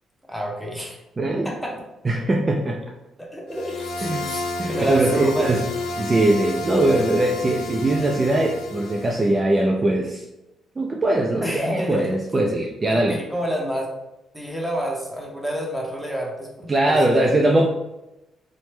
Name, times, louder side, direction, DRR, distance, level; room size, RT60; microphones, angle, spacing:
voice 1, 0.3-1.0 1.4-1.8 3.2-4.4 4.7-5.5 11.4-12.2 12.9-13.9 14.3-17.3, right 1 dB, ahead, -1 dB, 0.8 m, -29 dB
voice 2, 1.2-1.5 2.0-2.8 4.0-4.3 4.6-5.6 6.0-10.2 10.8-13.2 16.7-17.7, right 1 dB, 30° right, 0 dB, 0.3 m, -21 dB
sound 1, 3.5-9.3, left 3 dB, 85° left, 0.4 m, -31 dB
3.0 x 2.0 x 3.1 m, 0.94 s
cardioid pair, 90°, 0 cm